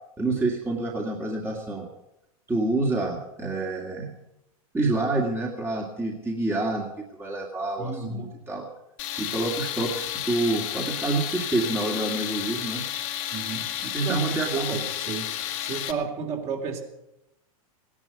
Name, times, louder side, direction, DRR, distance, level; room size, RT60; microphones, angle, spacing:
voice 1, 0.2-1.9 2.5-4.2 4.7-6.9 7.2-8.7 9.2-12.8 13.8-14.8, right 2 dB, 10° right, -1 dB, 2.2 m, -27 dB
voice 2, 7.8-8.3 13.3-13.7 14.0-14.2 14.5-15.3 15.6-16.8, right 5 dB, 35° right, 2 dB, 3.6 m, -32 dB
Tools, 9.0-15.9, left 12 dB, 55° left, 1.8 m, -32 dB
16.5 x 11.0 x 8.0 m, 0.88 s
hypercardioid pair, 110°, 19 cm